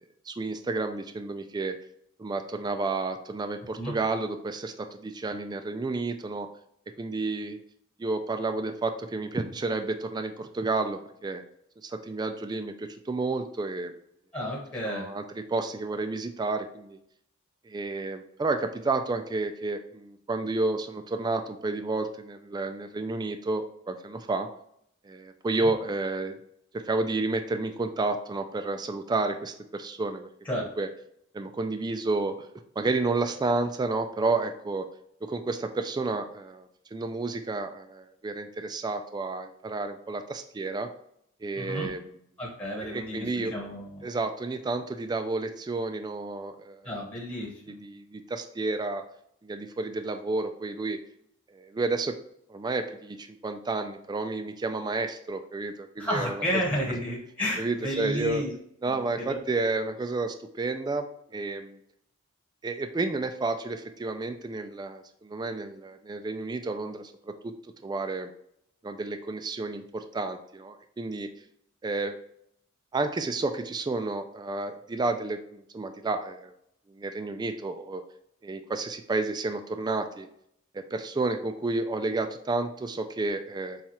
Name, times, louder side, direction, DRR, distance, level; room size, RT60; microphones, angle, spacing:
voice 1, 0.3-1.8 2.2-6.5 7.0-7.6 8.0-11.4 11.8-14.0 14.9-17.0 17.7-24.5 25.0-26.4 26.7-30.3 30.8-30.9 31.3-32.4 32.8-34.9 35.3-40.9 41.4-42.0 42.8-43.5 44.0-47.0 47.7-49.0 49.4-51.0 51.5-52.1 52.5-56.4 57.6-58.4 58.8-61.1 61.3-61.8 62.6-67.5 67.8-68.3 68.8-71.3 71.8-72.2 72.9-76.5 76.9-78.0 78.4-80.3 80.7-83.8, right 3 dB, 20° right, 7 dB, 0.3 m, -31 dB
voice 2, 14.3-15.1 25.6-25.7 30.4-30.6 41.6-41.9 42.4-44.0 46.8-47.8 56.0-58.5 58.9-59.4, equal, 25° left, -3 dB, 1.2 m, -32 dB
7.1 x 2.4 x 2.9 m, 0.70 s
head